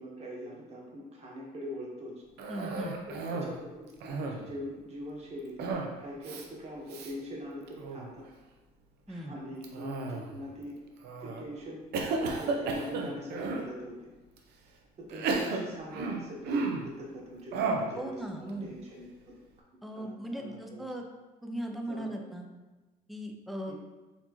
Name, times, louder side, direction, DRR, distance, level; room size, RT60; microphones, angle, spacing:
voice 1, 0.0-2.2 3.1-8.2 9.1-10.8 11.2-11.8 12.2-14.1 15.0-19.3 19.9-20.9 21.7-22.3 23.7-23.8, equal, 40° right, -3 dB, 1.1 m, -42 dB
Cough, 2.4-3.6 3.9-4.6 5.6-6.0 6.2-6.5 6.9-7.1 7.7-8.1 9.6-10.4 11.0-11.4 11.9-13.7 14.4-14.5 15.1-16.9 17.5-18.0, right 3 dB, 75° right, 0.5 m, -33 dB
voice 2, 2.5-3.0 9.1-9.4 17.9-18.7 19.8-21.1 21.4-22.5 23.1-23.7, right 1 dB, ahead, 2 dB, 0.4 m, -38 dB
4.3 x 2.8 x 2.9 m, 1.2 s
cardioid pair, 110°, 17 cm